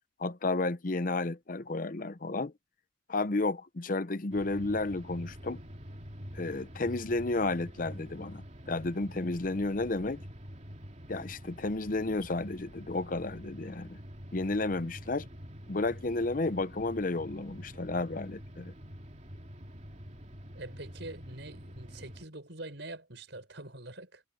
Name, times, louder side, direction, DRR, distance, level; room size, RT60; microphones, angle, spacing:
voice 1, 0.2-2.5 3.1-5.6 6.3-10.2 11.1-14.0 14.3-15.3 15.7-18.7, left 2 dB, 45° left, 0.7 m, -32 dB
sound 1, 4.3-22.3, equal, 35° right, 3.2 m, -46 dB
voice 2, 20.5-24.2, right 2 dB, 65° right, 6.2 m, -44 dB
head